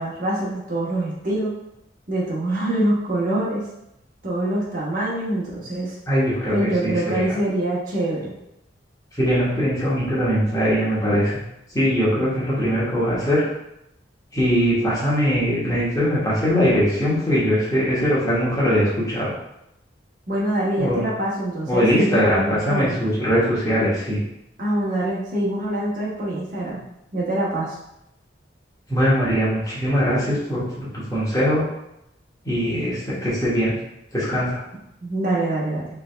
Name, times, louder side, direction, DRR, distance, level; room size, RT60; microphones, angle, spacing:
voice 1, 0.0-1.5 2.1-3.6 4.2-5.9 6.5-8.3 20.3-22.9 24.6-26.8 27.1-27.8 35.0-35.9, right 1 dB, 50° right, -6 dB, 1.3 m, -24 dB
voice 2, 6.1-7.3 9.1-11.4 11.7-13.4 14.3-19.3 20.7-21.1 21.6-24.2 28.9-31.6 32.4-33.7 34.1-34.6, equal, 20° left, -8 dB, 1.4 m, -21 dB
3.5 x 3.5 x 3.3 m, 0.83 s
head